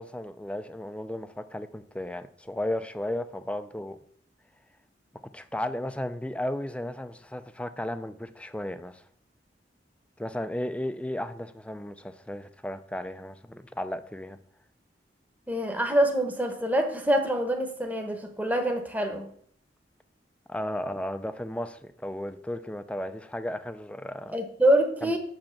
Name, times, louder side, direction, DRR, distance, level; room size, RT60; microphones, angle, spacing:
voice 1, 0.0-4.0 5.3-9.0 10.2-14.4 20.5-24.3 25.0-25.2, left 1 dB, 5° left, 0.5 m, -34 dB
voice 2, 15.5-19.3 24.3-25.2, right 1 dB, 10° right, 1.0 m, -25 dB
7.2 x 5.3 x 7.1 m
head